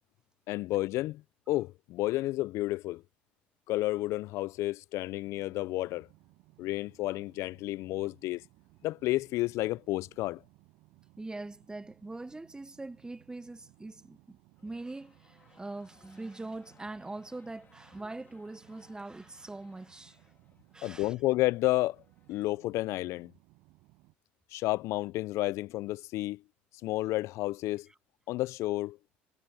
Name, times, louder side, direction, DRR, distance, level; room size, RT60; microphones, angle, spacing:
voice 1, 0.5-1.2 1.5-3.0 3.7-6.1 6.6-8.4 8.8-10.4 20.8-22.0 22.3-23.3 24.5-26.4 26.8-27.9 28.3-29.0, left 18 dB, 65° left, 0.4 m, -31 dB
sound 1, 5.2-24.1, right 22 dB, 70° right, 6.3 m, -62 dB
voice 2, 11.2-14.4 14.6-20.2 20.7-21.1, right 2 dB, 15° right, 0.8 m, -42 dB
sound 2, 14.5-23.0, left 6 dB, 35° left, 3.3 m, -65 dB
hypercardioid pair, 70°, 5 cm